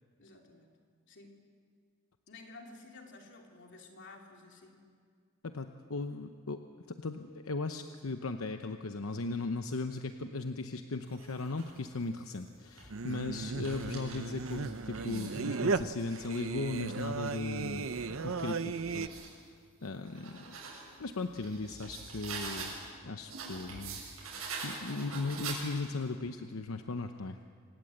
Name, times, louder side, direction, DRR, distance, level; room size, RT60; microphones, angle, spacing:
voice 1, 0.2-0.8 1.1-1.4 2.3-4.8 13.1-13.3, left 3 dB, 60° left, 1 dB, 3.2 m, -53 dB
voice 2, 5.4-6.6 6.9-19.1 19.8-20.6 21.0-22.7 23.0-24.0 24.3-27.4, left 3 dB, 85° left, 7 dB, 0.9 m, -37 dB
sound 1, 11.0-11.8 12.5-15.4 15.9-19.3 19.8-22.9 23.3-26.0, right 4 dB, 90° right, 7.2 m, -45 dB
Singing, 12.9-19.1, right 4 dB, 70° right, 0.7 m, -36 dB
26.0 x 18.5 x 7.9 m, 2.1 s
head